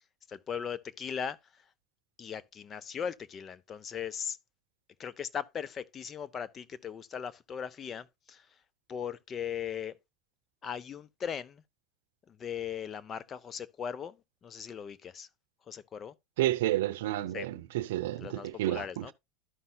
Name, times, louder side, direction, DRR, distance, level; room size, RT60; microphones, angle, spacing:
voice 1, 0.3-1.4 2.2-4.4 5.0-8.5 8.9-10.0 10.6-11.6 12.3-15.3 15.7-16.1 17.3-17.5 18.2-19.1, left 7 dB, 35° left, 0.7 m, -38 dB
voice 2, 16.4-19.1, right 15 dB, 80° right, 0.6 m, -31 dB
13.0 x 5.5 x 2.3 m
hypercardioid pair, 95°, 0 cm